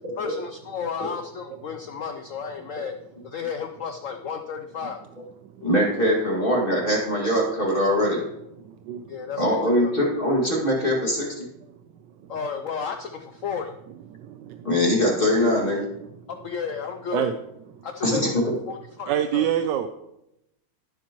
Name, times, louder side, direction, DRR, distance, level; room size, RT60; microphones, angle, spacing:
voice 1, 0.2-2.9 3.2-5.0 9.1-9.9 12.3-13.7 16.4-17.3 17.8-18.4 18.7-19.5, left 6 dB, 90° left, 6 dB, 0.7 m, -33 dB
voice 2, 5.6-8.2 9.4-11.5 14.6-15.9 18.0-18.4, equal, 25° left, -2 dB, 2.2 m, -22 dB
voice 3, 8.6-9.1 14.2-14.7 16.0-16.1 17.1-17.4 17.8-17.9 19.1-19.9, right 10 dB, 75° right, 8 dB, 1.2 m, -27 dB
17.5 x 7.2 x 3.0 m, 0.84 s
omnidirectional pair, 2.1 m